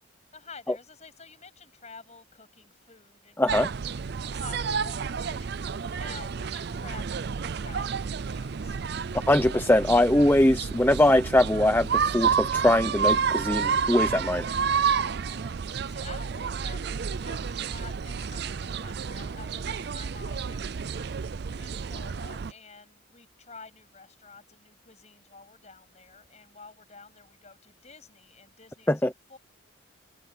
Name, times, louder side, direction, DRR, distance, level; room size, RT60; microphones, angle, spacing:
voice 1, 0.3-8.8 15.1-29.0 29.3-29.4, left 4 dB, 35° left, 7.6 m, -50 dB
voice 2, 3.4-3.7 9.3-14.4 28.9-29.1, left 1 dB, 10° left, 0.6 m, -22 dB
sound 1, 3.5-22.5, right 6 dB, 50° right, 0.4 m, -30 dB
head